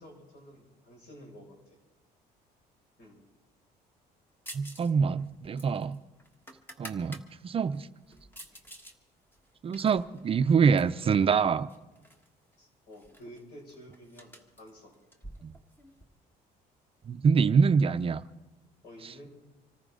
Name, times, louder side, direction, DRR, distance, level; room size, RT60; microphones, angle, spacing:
voice 1, 0.0-1.8 3.0-3.2 8.5-8.6 12.6-15.0 18.8-19.3, equal, 70° left, 0 dB, 5.8 m, -51 dB
sound 1, 4.5-4.9 5.2-7.3 7.7-9.0 9.3-11.0 11.7-12.3 12.5-12.6 12.9-16.0, right 1 dB, 10° left, 1.4 m, -49 dB
voice 2, 4.5-6.0 6.8-7.2 7.4-7.9 9.6-11.7 15.4-15.5 17.1-18.2, right 6 dB, 35° right, 12 dB, 0.5 m, -25 dB
25.5 x 14.0 x 3.8 m, 1.1 s
cardioid pair, 110°, 17 cm